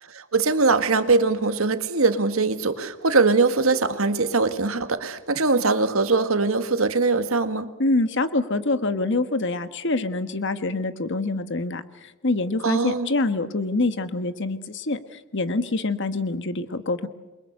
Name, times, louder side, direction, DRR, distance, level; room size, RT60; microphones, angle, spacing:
voice 1, 0.0-7.7 12.6-13.1, right 3 dB, 85° right, 9 dB, 1.9 m, -22 dB
voice 2, 7.8-17.1, left 2 dB, 60° left, 11 dB, 1.4 m, -25 dB
28.5 x 23.0 x 6.6 m, 1.1 s
head